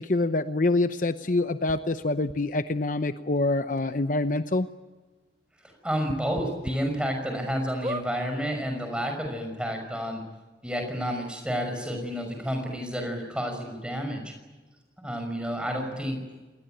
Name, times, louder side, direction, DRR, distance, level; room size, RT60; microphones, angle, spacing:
voice 1, 0.0-4.7, left 2 dB, 45° left, 11 dB, 0.8 m, -26 dB
sound 1, 1.7-1.8 2.3-2.4 3.3-3.4 3.8-3.9 4.3-4.4 6.0-6.7 7.2-7.3 7.8-8.1 8.9-9.0 9.2-9.3, right 1 dB, 20° right, 1.4 m, -35 dB
voice 2, 5.8-10.2 10.6-14.3 15.0-16.2, equal, 5° right, 4 dB, 5.6 m, -30 dB
27.5 x 20.0 x 9.1 m, 1.3 s
head